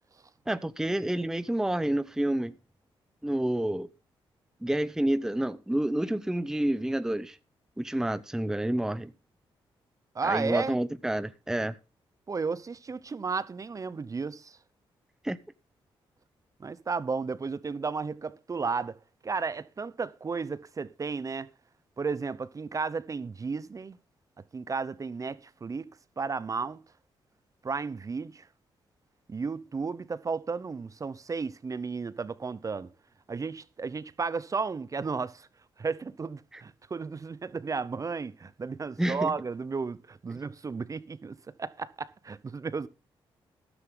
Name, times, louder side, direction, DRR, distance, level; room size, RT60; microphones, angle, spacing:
voice 1, 0.5-2.5 3.2-3.9 4.6-7.4 7.8-9.1 10.2-11.7 15.2-15.4 36.5-36.6 39.0-39.3, right 1 dB, 5° right, 0.7 m, -29 dB
voice 2, 10.1-10.8 12.3-14.6 16.6-19.0 19.2-21.5 22.0-24.0 24.5-25.9 26.2-26.8 27.6-28.4 29.3-32.9 33.3-35.5 35.8-42.9, right 4 dB, 35° right, 0.8 m, -33 dB
13.5 x 11.5 x 3.8 m
cardioid pair, 80°, 10 cm